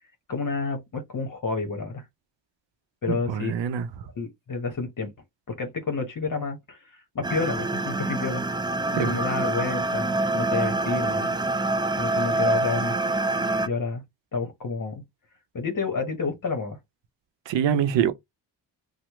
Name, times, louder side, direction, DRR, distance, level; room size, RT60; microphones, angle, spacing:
voice 1, 0.3-2.0 3.0-3.5 4.1-5.1 5.5-8.4 8.9-11.3 12.0-13.0 13.6-14.0 14.3-15.0 15.5-16.8, left 4 dB, 45° left, 1.0 m, -29 dB
voice 2, 3.1-3.9 8.9-9.2 17.5-18.1, right 9 dB, 80° right, 0.6 m, -24 dB
sound 1, 7.2-13.7, right 2 dB, 10° right, 0.3 m, -26 dB
3.0 x 2.1 x 2.9 m
cardioid pair, 65°, 43 cm